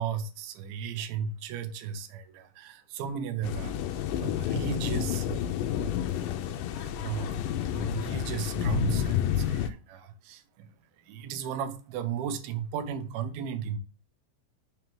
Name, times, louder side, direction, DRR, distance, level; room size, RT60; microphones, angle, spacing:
voice 1, 0.0-5.5 6.7-13.8, right 7 dB, 85° right, 2.6 m, -35 dB
sound 1, 3.4-9.7, left 10 dB, 80° left, 2.1 m, -30 dB
5.9 x 4.5 x 3.5 m
omnidirectional pair, 4.2 m